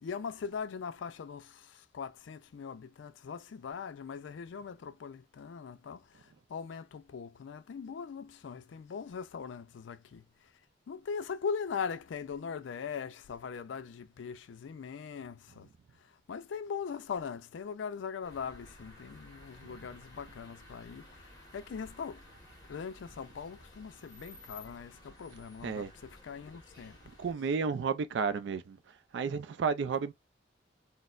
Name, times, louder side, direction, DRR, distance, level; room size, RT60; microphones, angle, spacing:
voice 1, 0.0-10.5 10.9-15.7 16.0-22.2 22.7-27.0, left 6 dB, 80° left, 0.4 m, -41 dB
sound 1, 18.2-27.3, left 1 dB, 20° left, 1.3 m, -54 dB
voice 2, 27.2-28.8 29.1-30.1, right 5 dB, 70° right, 0.3 m, -32 dB
4.0 x 2.0 x 2.4 m
head